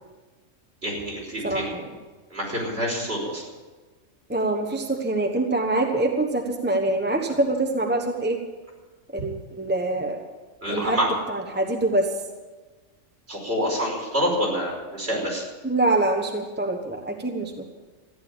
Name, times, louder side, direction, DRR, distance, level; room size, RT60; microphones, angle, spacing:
voice 1, 0.8-1.6 2.3-3.4 10.6-11.2 13.3-15.4, equal, 50° right, -3 dB, 5.3 m, -27 dB
voice 2, 1.4-2.0 4.3-8.4 9.1-10.2 10.7-11.0 11.3-12.1 15.6-17.7, right 2 dB, 10° right, 3 dB, 1.1 m, -25 dB
14.5 x 10.5 x 9.0 m, 1.3 s
omnidirectional pair, 1.4 m